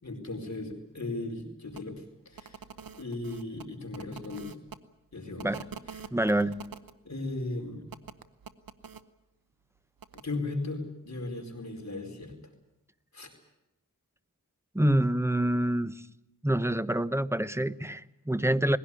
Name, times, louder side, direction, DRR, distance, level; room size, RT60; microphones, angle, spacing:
voice 1, 0.0-2.6 2.9-4.6 5.1-5.5 5.9-6.0 7.0-7.8 10.2-12.4 13.1-13.3, left 2 dB, 55° left, 2 dB, 4.6 m, -37 dB
sound 1, 1.7-1.8 2.3-4.8 5.4-6.9 7.9-9.0 10.0-10.2, right 6 dB, 85° right, 0.9 m, -45 dB
voice 2, 6.1-6.6 14.7-16.0 16.4-18.8, right 1 dB, 10° right, 14 dB, 0.8 m, -26 dB
20.5 x 16.5 x 9.8 m, 0.88 s
wide cardioid pair, 55°, 34 cm